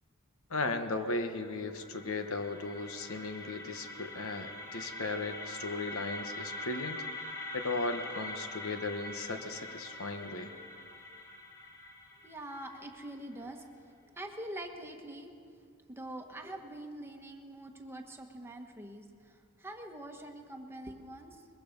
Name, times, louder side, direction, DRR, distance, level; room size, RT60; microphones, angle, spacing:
voice 1, 0.5-7.0 7.5-10.5, left 3 dB, 65° left, 7 dB, 1.2 m, -36 dB
sound 1, 1.4-13.3, left 1 dB, 15° left, 1.8 m, -44 dB
voice 2, 12.2-15.3 15.9-21.5, right 1 dB, 10° right, 3 dB, 1.3 m, -45 dB
22.5 x 22.0 x 5.3 m, 2.2 s
head